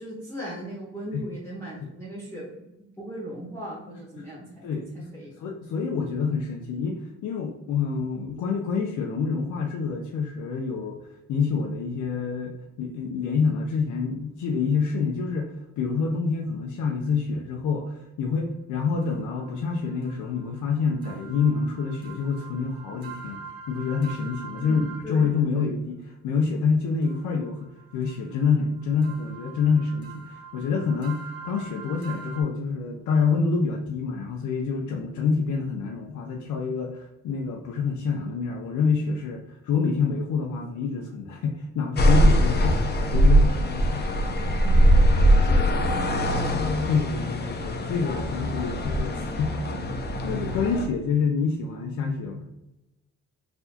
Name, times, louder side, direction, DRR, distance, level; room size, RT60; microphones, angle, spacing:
voice 1, 0.0-2.5 3.0-4.7 4.9-5.3 24.6-25.7 44.5-44.8 45.4-46.5, equal, 10° left, -6 dB, 1.1 m, -38 dB
voice 2, 4.6-5.1 5.4-11.0 11.3-44.1 44.4-44.5 46.5-52.5, left 5 dB, 75° left, 1 dB, 0.6 m, -27 dB
sound 1, 19.0-25.4 27.0-32.4, right 5 dB, 50° right, 1.2 m, -44 dB
sound 2, 42.0-50.9, equal, 35° left, 0.6 m, -21 dB
4.1 x 2.7 x 2.8 m, 0.94 s
cardioid pair, 90°, 30 cm